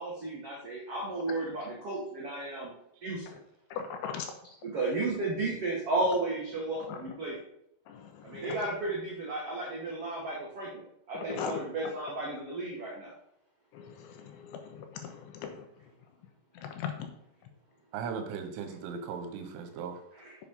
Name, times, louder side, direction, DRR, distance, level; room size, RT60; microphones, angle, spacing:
voice 1, 0.0-2.7 3.0-3.4 4.6-7.4 8.2-13.1 20.1-20.4, right 2 dB, 65° right, -3 dB, 1.5 m, -33 dB
voice 2, 3.7-4.3 6.9-7.0 7.9-8.6 11.3-11.5 13.7-15.7 16.6-17.1, left 7 dB, 80° left, 5 dB, 3.2 m, -39 dB
voice 3, 17.9-20.0, right 6 dB, 85° right, 6 dB, 3.7 m, -37 dB
8.3 x 6.9 x 5.5 m, 0.74 s
omnidirectional pair, 5.5 m